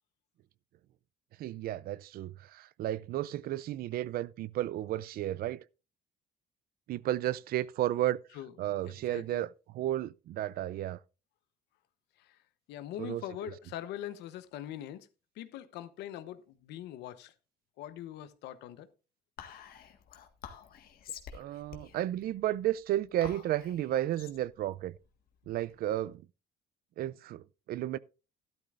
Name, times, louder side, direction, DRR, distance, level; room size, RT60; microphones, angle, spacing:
voice 1, 1.4-5.7 6.9-8.2 8.6-11.0 13.0-13.2 21.3-24.9 25.5-26.2 27.0-28.0, right 13 dB, 65° right, 0.5 m, -33 dB
voice 2, 8.9-9.5 12.2-12.4 12.7-15.1 15.4-17.3 17.8-18.9, left 12 dB, 85° left, 0.9 m, -42 dB
Whispering, 19.4-26.0, left 8 dB, 65° left, 1.7 m, -49 dB
13.0 x 12.0 x 2.5 m
cardioid pair, 110°, 17 cm